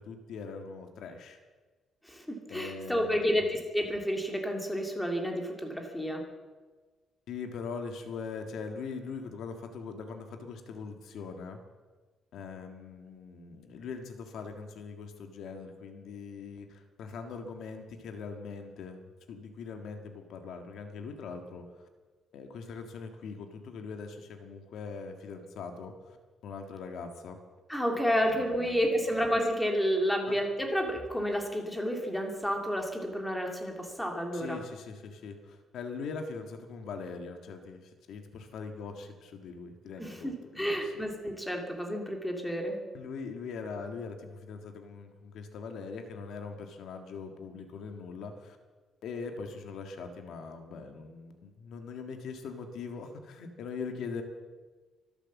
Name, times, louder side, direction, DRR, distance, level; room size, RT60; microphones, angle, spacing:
voice 1, 0.0-1.4 2.5-3.4 7.3-11.6 12.3-19.0 19.3-21.9 22.3-26.2 26.4-27.4 28.2-29.0 30.3-30.4 34.3-40.9 42.9-48.6 49.0-54.2, left 5 dB, 70° left, 5 dB, 1.8 m, -41 dB
voice 2, 2.0-6.2 27.7-34.6 40.0-42.8, equal, 5° left, 2 dB, 2.3 m, -30 dB
24.5 x 8.2 x 7.2 m, 1.3 s
cardioid pair, 165°, 0 cm